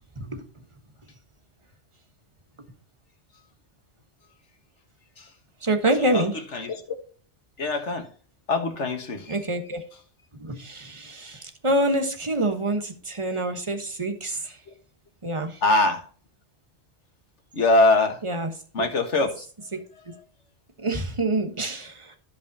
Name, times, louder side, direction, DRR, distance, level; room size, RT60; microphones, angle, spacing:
voice 1, 5.6-6.4 9.3-9.8 10.3-14.6 15.2-15.6 18.2-18.5 18.8-18.9 19.7-20.1 20.8-22.1, right 1 dB, 25° right, 5 dB, 1.3 m, -27 dB
voice 2, 7.6-8.0 8.5-9.3 15.6-16.0 17.5-18.2 18.7-19.5, left 2 dB, 90° left, 5 dB, 1.8 m, -22 dB
15.0 x 5.3 x 2.8 m, 0.42 s
omnidirectional pair, 1.2 m